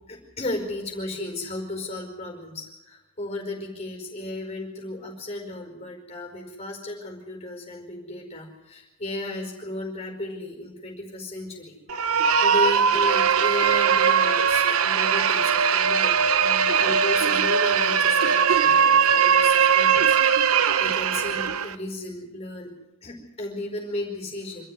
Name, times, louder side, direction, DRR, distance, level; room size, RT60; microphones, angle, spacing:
voice 1, 0.1-11.7 12.1-22.7 23.0-24.7, left 1 dB, 30° left, 1 dB, 4.8 m, -34 dB
sound 1, 11.9-21.7, right 7 dB, 80° right, 1.0 m, -20 dB
26.0 x 13.0 x 9.7 m, 0.99 s
head